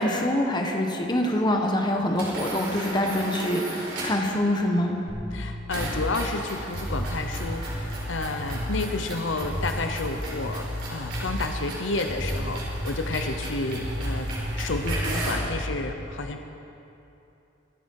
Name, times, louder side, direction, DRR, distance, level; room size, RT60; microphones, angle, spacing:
voice 1, 0.0-5.0, left 1 dB, 20° left, 2 dB, 1.4 m, -25 dB
sound 1, 2.1-4.3 5.7-15.5, right 1 dB, 60° right, 4.4 m, -36 dB
sound 2, 5.1-6.0 6.7-8.6 9.4-10.1 10.4-11.4 12.0-15.7, equal, 45° left, 3.4 m, -32 dB
voice 2, 5.3-16.4, left 3 dB, 70° left, 6 dB, 0.8 m, -31 dB
24.5 x 10.0 x 4.8 m, 2.9 s
head